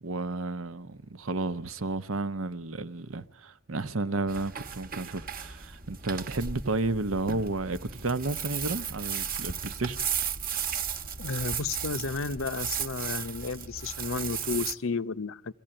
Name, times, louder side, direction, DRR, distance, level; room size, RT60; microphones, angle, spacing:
voice 1, 0.0-10.0, right 3 dB, 80° right, 0.8 m, -32 dB
sound 1, 4.3-14.7, right 7 dB, 45° right, 1.1 m, -35 dB
voice 2, 11.2-15.5, left 4 dB, 70° left, 0.7 m, -32 dB
23.5 x 15.5 x 8.9 m
head